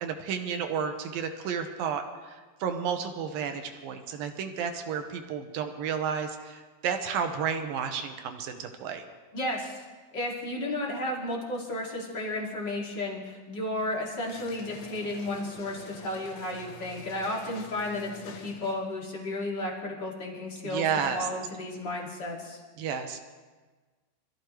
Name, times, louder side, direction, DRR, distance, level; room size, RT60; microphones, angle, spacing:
voice 1, 0.0-9.0 20.6-21.3 22.8-23.2, right 7 dB, 75° right, 6 dB, 2.3 m, -32 dB
voice 2, 9.3-9.8 10.1-20.9 21.1-22.6, left 1 dB, 30° left, -3 dB, 2.4 m, -33 dB
sound 1, 14.2-19.0, left 4 dB, 70° left, 2.4 m, -48 dB
25.0 x 14.5 x 3.2 m, 1.3 s
omnidirectional pair, 4.9 m